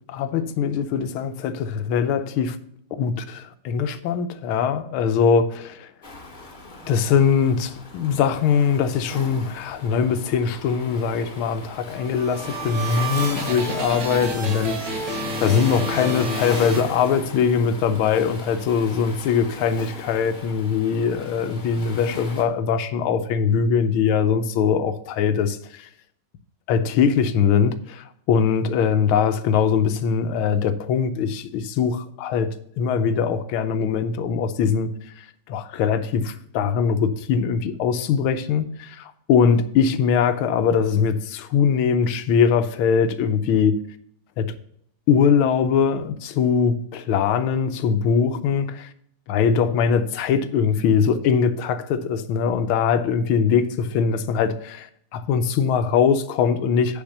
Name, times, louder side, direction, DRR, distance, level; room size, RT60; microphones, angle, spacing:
voice 1, 0.1-2.6 2.9-5.9 6.9-25.9 26.7-34.9 35.5-43.8 44.4-44.5 45.1-48.9 49.3-54.9 55.1-57.0, left 6 dB, 85° left, 1.6 m, -21 dB
Waves surf, 6.0-22.4, left 2 dB, 30° left, 1.1 m, -38 dB
sound 1, 11.9-17.5, right 1 dB, 60° right, 2.1 m, -30 dB
6.9 x 5.6 x 6.5 m
omnidirectional pair, 2.3 m